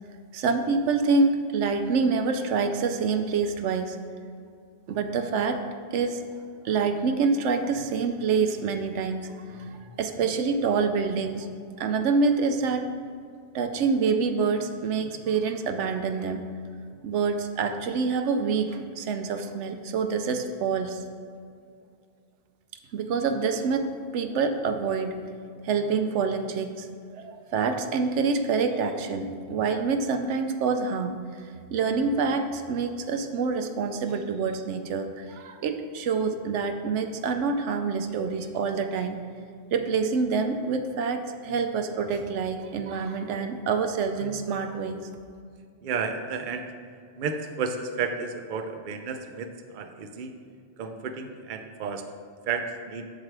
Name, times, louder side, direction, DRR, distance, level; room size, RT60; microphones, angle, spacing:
voice 1, 0.3-4.0 4.9-5.6 5.9-6.2 6.6-11.5 11.8-12.9 13.5-16.4 17.0-21.0 22.9-25.2 25.6-26.9 27.1-31.2 31.7-39.2 39.7-45.0, right 4 dB, 90° right, 7 dB, 0.9 m, -26 dB
voice 2, 45.8-46.6 47.2-50.3 50.8-52.0 52.5-53.0, right 5 dB, 55° right, 6 dB, 0.7 m, -32 dB
7.5 x 7.2 x 3.4 m, 2.3 s
omnidirectional pair, 1.2 m